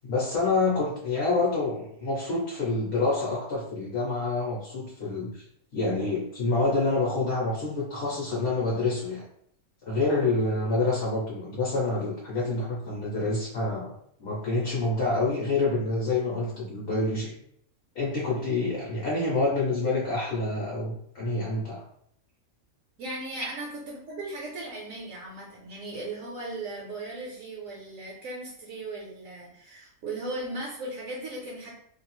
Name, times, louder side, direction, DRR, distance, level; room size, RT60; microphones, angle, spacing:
voice 1, 0.0-5.4 5.7-9.2 9.8-13.9 14.2-17.3 17.9-21.8, left 3 dB, 55° left, -6 dB, 0.9 m, -27 dB
voice 2, 23.0-31.7, right 2 dB, 70° right, -3 dB, 1.0 m, -37 dB
2.6 x 2.4 x 2.9 m, 0.69 s
omnidirectional pair, 1.5 m